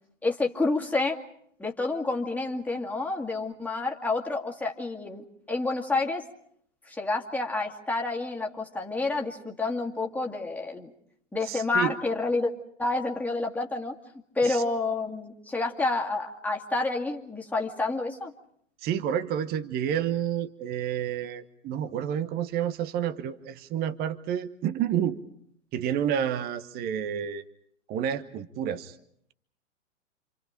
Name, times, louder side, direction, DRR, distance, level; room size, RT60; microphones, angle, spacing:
voice 1, 0.2-1.2 1.6-6.2 6.9-10.9 11.3-12.5 12.8-13.9 14.4-18.3, left 3 dB, 5° left, 0 dB, 2.3 m, -29 dB
voice 2, 11.4-11.9 14.4-14.6 18.8-25.2 25.7-27.4 27.9-28.9, right 9 dB, 25° right, 12 dB, 1.1 m, -29 dB
29.5 x 27.0 x 5.1 m, 0.68 s
figure-of-eight pair, 110°, 37 cm